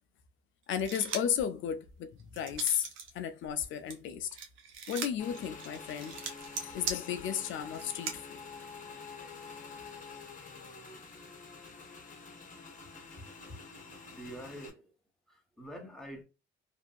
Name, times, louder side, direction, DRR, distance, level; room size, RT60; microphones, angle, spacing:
voice 1, 0.7-2.9 3.1-4.3 4.9-6.2 6.6-8.4, left 9 dB, 75° left, 0.4 m, -34 dB
sound 1, 0.7-1.4 1.9-3.1 3.4-8.2, right 5 dB, 90° right, 0.7 m, -40 dB
Motorcycle / Engine, 5.2-14.7, left 4 dB, 40° left, 0.9 m, -47 dB
voice 2, 12.8-13.6 14.1-14.9 15.3-16.2, equal, ahead, 1.2 m, -47 dB
2.7 x 2.5 x 2.3 m
cardioid pair, 90°, 20 cm